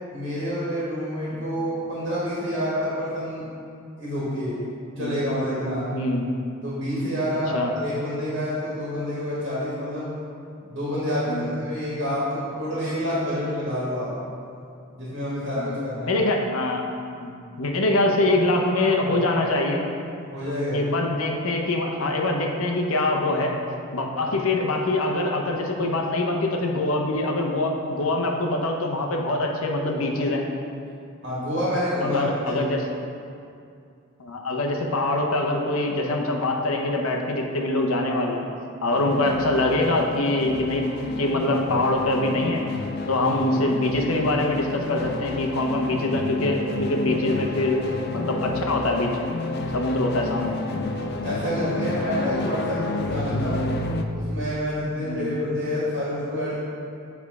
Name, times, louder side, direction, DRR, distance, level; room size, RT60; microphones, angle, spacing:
voice 1, 0.1-3.5 4.0-4.6 5.0-5.8 6.6-10.1 10.6-14.1 14.9-16.2 20.3-20.8 31.2-32.6 50.9-53.6 54.1-56.5, equal, 60° right, -8 dB, 1.6 m, -28 dB
voice 2, 5.9-6.3 7.5-7.7 11.3-11.5 15.5-15.8 16.0-16.9 17.2-17.3 17.6-19.8 20.7-23.5 23.9-30.4 32.0-32.8 34.2-38.5 38.8-42.7 43.1-47.9 48.1-49.1 49.7-50.6 53.4-53.6 55.0-55.3, left 2 dB, 90° left, 1 dB, 0.8 m, -24 dB
sound 1, 38.9-54.0, left 2 dB, 50° left, 0.4 m, -30 dB
7.3 x 3.5 x 4.7 m, 2.4 s
head